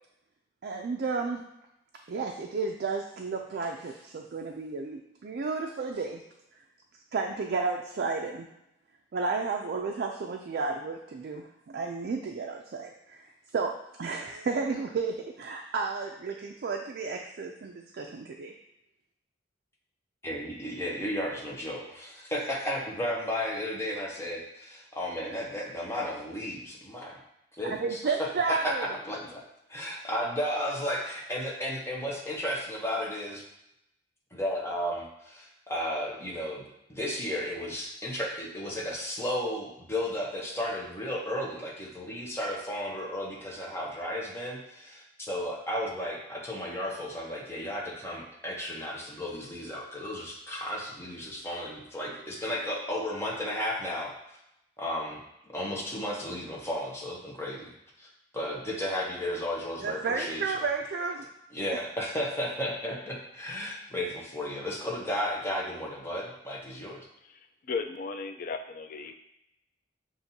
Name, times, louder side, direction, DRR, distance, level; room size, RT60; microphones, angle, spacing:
voice 1, 0.6-1.4 2.1-6.2 7.1-8.5 9.1-18.5 27.8-28.9 59.8-61.2, right 4 dB, 55° right, 2 dB, 0.4 m, -32 dB
voice 2, 20.2-27.2 27.6-29.4 29.7-33.4 34.3-36.6 36.9-54.4 54.8-55.2 55.5-57.7 58.0-60.6 61.5-67.1, left 1 dB, 15° left, -2 dB, 0.8 m, -34 dB
voice 3, 67.6-69.1, left 4 dB, 50° left, 6 dB, 0.4 m, -35 dB
7.2 x 2.5 x 2.7 m, 0.85 s
head